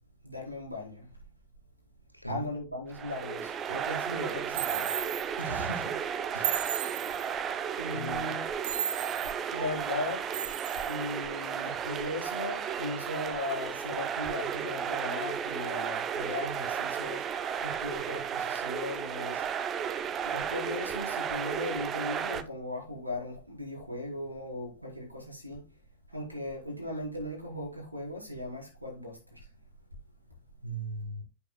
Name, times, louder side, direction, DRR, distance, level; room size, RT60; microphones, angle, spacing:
voice 1, 0.2-1.1 2.3-5.0 7.8-8.4 9.5-10.3 10.9-19.4 20.2-25.6 26.1-29.5, left 2 dB, 90° right, 4.4 m, -38 dB
voice 2, 2.1-2.5 5.4-5.9 6.3-6.6 7.9-8.4 30.6-31.2, right 1 dB, 90° left, 1.4 m, -38 dB
sound 1, 2.9-22.4, right 8 dB, 25° right, 0.9 m, -34 dB
sound 2, 4.5-5.3 6.4-7.3 8.6-9.3 10.3-11.0, right 10 dB, 55° right, 1.1 m, -34 dB
9.3 x 8.7 x 2.2 m
figure-of-eight pair, 90°, 0 cm